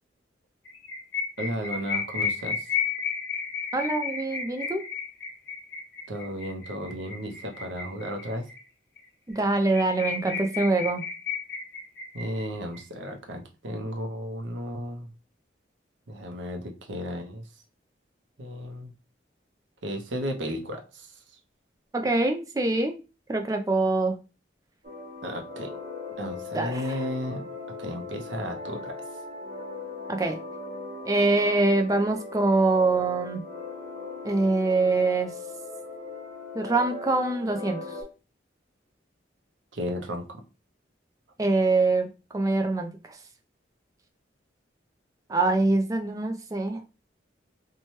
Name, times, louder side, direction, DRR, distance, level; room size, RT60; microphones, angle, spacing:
sound 1, 0.7-8.6 9.0-9.1 9.3-9.4 9.7-12.8, left 6 dB, 60° left, 1.0 m, -33 dB
voice 1, 1.4-2.7 6.1-8.4 12.1-15.1 16.1-17.4 18.4-18.9 19.8-21.1 25.2-25.7 26.2-27.5 27.8-28.9 39.7-40.4, equal, 75° right, 0.7 m, -34 dB
voice 2, 3.7-4.8 9.3-11.0 21.9-23.0 23.3-24.2 26.5-27.1 30.1-30.4 31.0-33.4 34.2-35.3 36.5-37.8 41.4-42.1 42.3-43.2 45.3-46.8, right 2 dB, 20° right, 0.3 m, -24 dB
sound 2, 24.8-38.0, left 3 dB, 40° right, 0.8 m, -39 dB
2.8 x 2.2 x 3.0 m
head